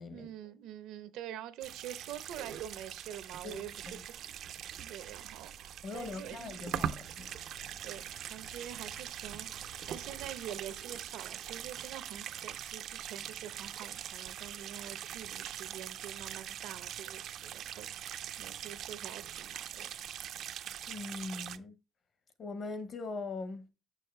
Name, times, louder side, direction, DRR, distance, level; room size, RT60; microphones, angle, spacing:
voice 1, 0.1-4.4 4.8-6.6 7.8-19.9, right 11 dB, 80° right, 0.8 m, -46 dB
sound 1, 1.6-21.6, right 10 dB, 50° right, 0.4 m, -42 dB
voice 2, 3.4-4.0 5.8-7.3 20.9-21.8 22.4-23.7, left 3 dB, 35° left, 0.9 m, -41 dB
Wind, 5.9-11.4, left 1 dB, 75° left, 3.1 m, -58 dB
6.4 x 6.1 x 3.2 m
cardioid pair, 165°, 0 cm